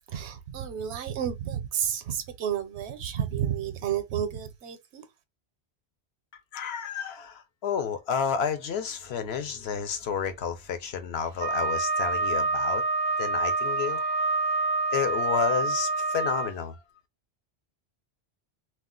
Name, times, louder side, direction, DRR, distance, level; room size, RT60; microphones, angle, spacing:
voice 1, 0.1-5.0, right 9 dB, 85° right, 0.9 m, -31 dB
voice 2, 6.5-12.8 13.2-14.3 14.9-16.8, left 7 dB, 75° left, 0.9 m, -31 dB
Wind instrument woodwind instrument, 11.4-16.5, right 3 dB, 30° left, 0.6 m, -27 dB
2.4 x 2.2 x 3.7 m
omnidirectional pair, 1.1 m